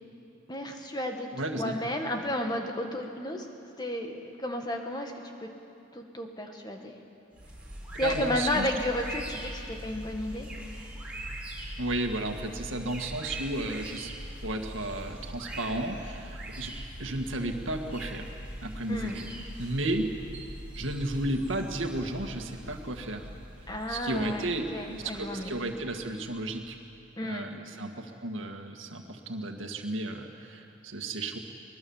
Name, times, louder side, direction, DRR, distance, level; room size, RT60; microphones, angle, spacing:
voice 1, 0.5-3.5 3.8-4.1 4.4-5.1 5.4-5.5 5.9-7.0 8.0-10.5 18.9-19.2 23.7-25.6 27.2-27.5, left 1 dB, 20° left, 3 dB, 1.7 m, -32 dB
voice 2, 1.3-1.8 8.0-8.7 11.8-14.1 14.4-16.7 17.0-18.3 18.6-19.1 19.6-20.1 20.8-23.3 23.9-26.8 27.2-31.4, right 1 dB, 85° right, 4 dB, 1.9 m, -33 dB
sound 1, 7.3-26.8, right 1 dB, 5° right, 4.1 m, -42 dB
24.0 x 20.5 x 7.2 m, 2.7 s
head